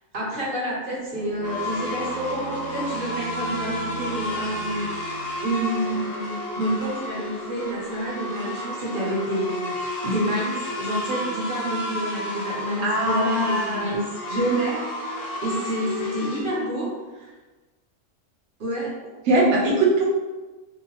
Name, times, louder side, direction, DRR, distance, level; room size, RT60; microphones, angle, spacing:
voice 1, 0.1-4.9 5.4-9.8 10.0-17.3 18.6-18.9, right 1 dB, 50° right, -5 dB, 0.8 m, -28 dB
Bowed string instrument, 1.1-5.6, right 3 dB, 25° left, 0.6 m, -38 dB
sound 1, 1.4-16.4, left 1 dB, 55° left, 0.8 m, -31 dB
voice 2, 12.8-13.9 19.3-20.0, right 2 dB, 70° right, -2 dB, 1.0 m, -21 dB
2.8 x 2.2 x 2.8 m, 1.2 s
omnidirectional pair, 1.4 m